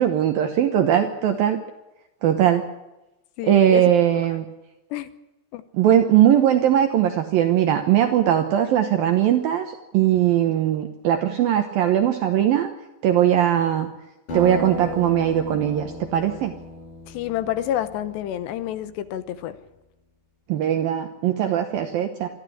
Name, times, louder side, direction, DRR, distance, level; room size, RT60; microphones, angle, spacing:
voice 1, 0.0-1.6 2.2-2.6 3.4-4.5 5.7-12.7 13.0-13.9 14.3-16.5 20.5-22.3, right 10 dB, 70° right, 6 dB, 2.4 m, -20 dB
voice 2, 3.4-3.9 4.9-5.1 5.5-5.6 17.1-19.6, left 11 dB, 80° left, 12 dB, 3.0 m, -28 dB
Acoustic guitar, 14.3-19.1, left 1 dB, 45° left, 7.6 m, -35 dB
22.0 x 14.0 x 10.0 m, 0.97 s
omnidirectional pair, 5.2 m